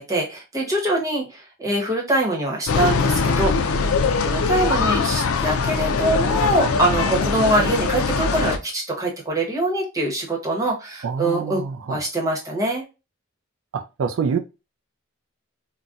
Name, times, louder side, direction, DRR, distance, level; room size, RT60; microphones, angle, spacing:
voice 1, 0.0-3.8 4.2-11.6 11.9-12.8, right 1 dB, 15° right, 1.0 m, -23 dB
sound 1, 2.7-8.6, left 4 dB, 85° left, 0.4 m, -22 dB
voice 2, 11.0-12.0 13.7-14.4, right 6 dB, 65° right, 0.4 m, -26 dB
3.9 x 2.2 x 2.3 m
head